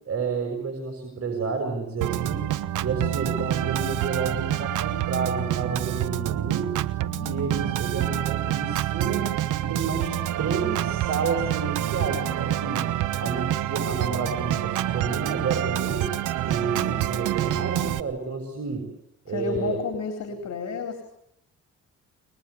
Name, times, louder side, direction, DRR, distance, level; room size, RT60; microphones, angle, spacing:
voice 1, 0.1-2.5 2.8-6.8 7.2-12.9 13.2-16.1 16.4-18.9 19.3-19.8, right 5 dB, 50° right, 3 dB, 6.6 m, -30 dB
Organ, 2.0-18.0, right 12 dB, 85° right, 1.2 m, -27 dB
voice 2, 7.0-7.8 16.5-16.9 19.3-21.0, left 6 dB, 60° left, 6 dB, 4.1 m, -33 dB
23.5 x 21.0 x 9.5 m, 0.77 s
cardioid pair, 90°, 30 cm